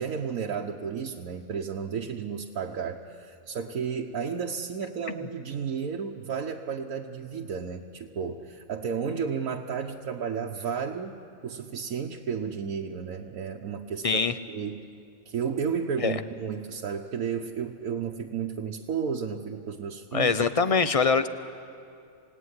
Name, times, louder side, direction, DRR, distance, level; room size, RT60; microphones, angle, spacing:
voice 1, 0.0-14.2 14.5-14.8 15.3-20.4, right 6 dB, 90° right, 0 dB, 1.4 m, -32 dB
voice 2, 14.0-14.3 16.0-16.2 20.1-21.3, left 5 dB, 30° left, 11 dB, 0.7 m, -23 dB
28.0 x 17.5 x 9.7 m, 2.4 s
omnidirectional pair, 1.4 m